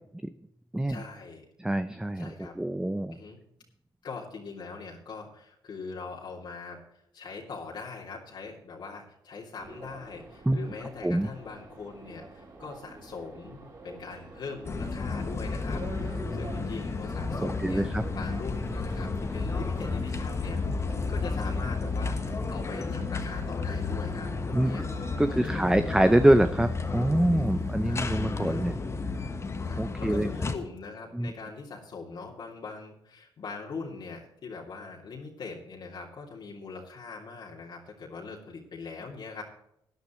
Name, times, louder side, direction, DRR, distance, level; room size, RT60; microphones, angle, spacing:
voice 1, 0.9-1.5 2.1-2.5 3.1-3.4 4.0-6.8 7.1-24.9 25.3-25.9 27.8-28.0 28.5-29.0 29.7-39.4, left 4 dB, 60° left, -3 dB, 2.7 m, -42 dB
voice 2, 1.6-3.2 10.5-10.6 11.0-11.3 17.4-18.0 24.5-24.7 25.2-28.8 29.8-30.3 31.1-31.3, right 1 dB, 10° right, 10 dB, 0.6 m, -25 dB
sound 1, 9.6-28.0, right 2 dB, 45° right, 5.9 m, -48 dB
sound 2, 14.6-30.5, left 3 dB, 30° left, 1.3 m, -32 dB
17.5 x 10.5 x 3.1 m, 0.77 s
cardioid pair, 90°, 9 cm